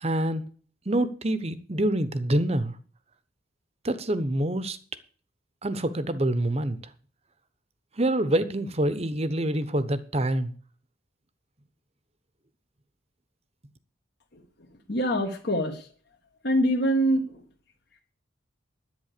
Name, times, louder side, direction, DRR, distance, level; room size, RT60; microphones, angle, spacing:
voice 1, 0.0-0.4 0.9-2.7 3.8-4.8 5.6-6.8 8.0-10.5, right 1 dB, 30° right, 0.9 m, -26 dB
voice 2, 14.9-15.8 16.4-17.2, equal, 55° left, 1.7 m, -24 dB
10.5 x 9.1 x 6.7 m
head